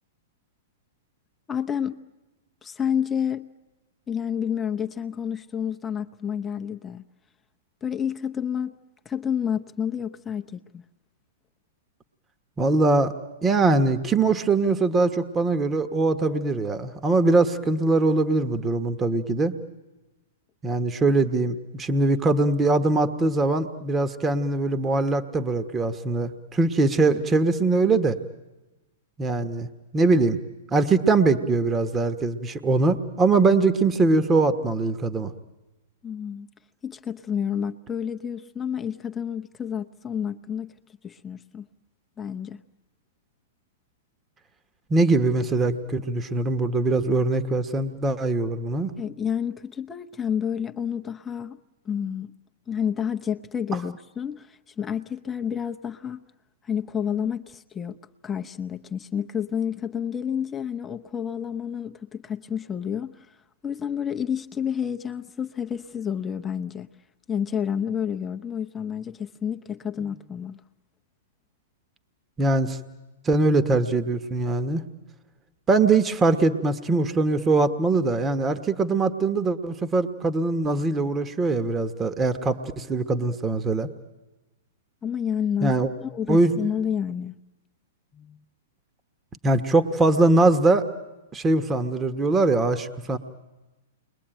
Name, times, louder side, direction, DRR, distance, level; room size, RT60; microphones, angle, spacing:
voice 1, 1.5-2.0 2.6-3.5 4.1-7.0 7.8-8.7 9.0-10.8 36.0-36.5 36.8-40.7 41.0-41.7 42.2-42.6 49.0-51.6 51.9-52.3 52.7-56.2 56.6-58.0 58.2-63.3 63.6-66.9 67.3-70.6 85.0-85.8 86.0-87.3 88.1-88.4, left 8 dB, 20° left, 6 dB, 0.8 m, -29 dB
voice 2, 12.6-13.1 13.4-19.5 20.6-28.2 29.2-29.7 29.9-30.4 30.7-35.3 44.9-48.9 72.4-72.8 73.2-74.8 75.7-83.9 85.6-85.9 86.3-86.5 89.4-90.9 91.3-93.2, right 3 dB, 20° right, 9 dB, 1.3 m, -22 dB
29.5 x 22.0 x 9.1 m, 1.1 s
hypercardioid pair, 115°, 0 cm